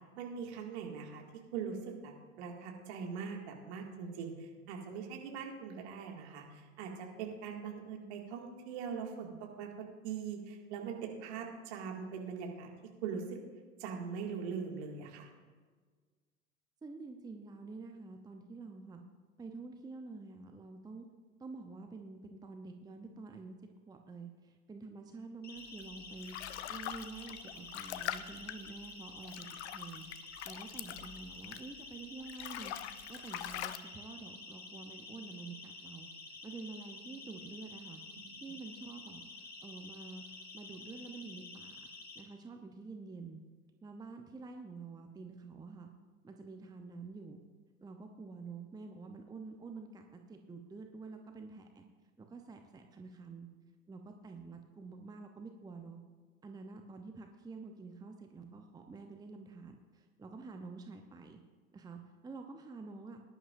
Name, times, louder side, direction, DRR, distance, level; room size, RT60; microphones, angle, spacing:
voice 1, 0.2-1.2 1.5-9.7 10.0-12.7 13.0-13.4 13.8-15.3 38.3-38.4, right 6 dB, 55° right, 1 dB, 2.2 m, -41 dB
voice 2, 16.8-19.0 19.4-21.1 21.4-23.5 23.9-26.4 26.7-29.5 29.7-32.8 33.1-38.0 38.3-39.3 39.6-41.9 42.1-43.4 43.8-45.9 46.2-47.4 47.8-51.8 52.2-53.5 53.9-56.0 56.4-61.4 61.7-63.2, right 4 dB, 10° right, 5 dB, 0.8 m, -48 dB
Siren, 25.4-42.2, left 3 dB, 25° left, 1.7 m, -50 dB
sound 1, 25.8-31.9 32.2-33.8, left 12 dB, 55° left, 0.7 m, -43 dB
18.5 x 11.0 x 2.6 m, 1.5 s
figure-of-eight pair, 85°, 40 cm